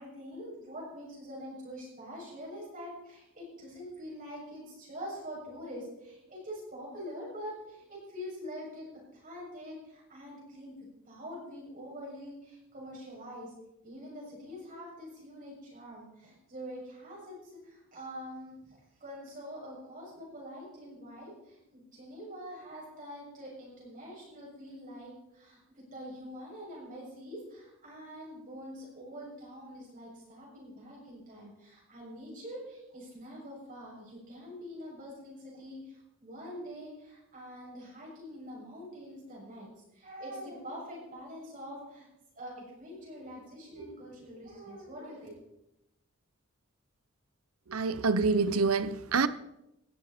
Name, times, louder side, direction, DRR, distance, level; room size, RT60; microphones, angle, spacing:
voice 1, 0.0-10.8 11.1-13.5 13.8-42.1 42.4-45.3, equal, 40° right, 7.0 m, -45 dB
voice 2, 47.7-49.3, right 4 dB, 80° right, 0.8 m, -26 dB
17.5 x 13.5 x 4.3 m
head